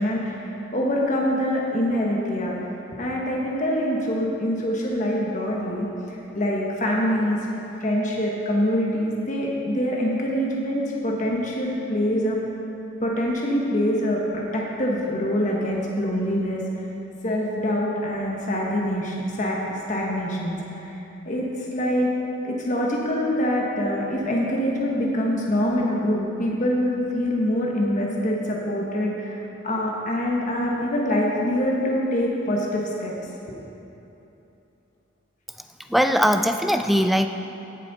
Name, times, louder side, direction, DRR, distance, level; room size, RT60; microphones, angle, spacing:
voice 1, 0.0-2.5 3.0-7.5 7.8-12.4 13.0-16.6 17.2-21.0 21.2-22.1 22.4-29.4 29.6-33.1, equal, 40° left, -2 dB, 1.2 m, -25 dB
voice 2, 35.9-37.3, equal, ahead, 7 dB, 0.3 m, -20 dB
17.5 x 7.3 x 4.1 m, 3.0 s
head